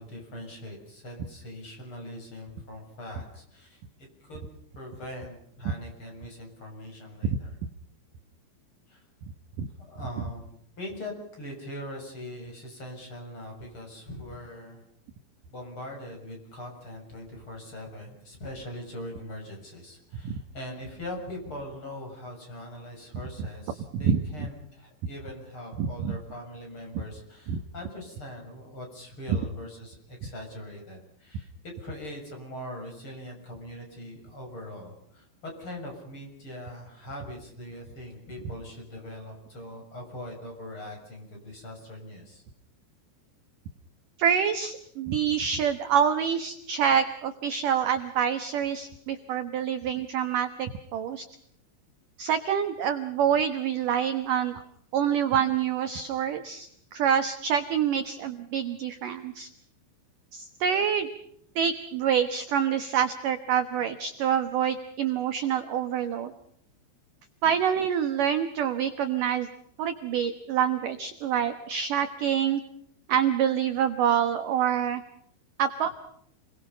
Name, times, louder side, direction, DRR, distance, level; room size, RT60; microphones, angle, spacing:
voice 1, 0.0-3.8 4.2-4.4 4.7-7.5 8.9-9.0 9.8-10.5 10.8-14.8 15.5-31.5 31.8-42.4, left 1 dB, 25° left, 1 dB, 7.3 m, -41 dB
voice 2, 25.8-26.2 27.5-27.6 29.3-29.4 44.2-51.3 52.2-54.6 54.9-59.5 60.3-61.1 61.6-66.3 67.4-69.5 69.8-72.6 73.1-75.0 75.6-75.9, right 8 dB, 70° right, 9 dB, 2.0 m, -26 dB
29.5 x 22.0 x 5.7 m, 0.69 s
omnidirectional pair, 5.4 m